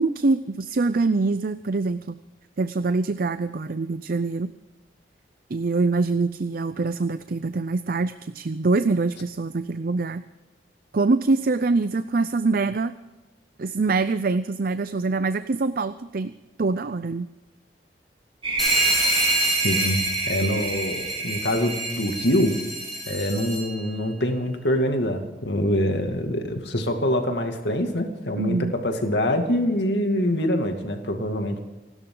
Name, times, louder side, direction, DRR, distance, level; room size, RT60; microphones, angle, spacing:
voice 1, 0.0-2.2 2.6-4.5 5.5-10.2 10.9-12.9 13.6-16.3 16.6-17.3 28.4-28.7, right 3 dB, 55° right, 13 dB, 0.5 m, -24 dB
sound 1, 18.4-23.0, right 3 dB, 30° right, 3.6 m, -28 dB
sound 2, 18.6-23.8, right 1 dB, ahead, 4.5 m, -28 dB
voice 2, 19.6-20.0 20.3-22.5 23.1-31.6, left 1 dB, 70° left, 4 dB, 2.4 m, -24 dB
28.5 x 12.5 x 3.9 m, 1.1 s
head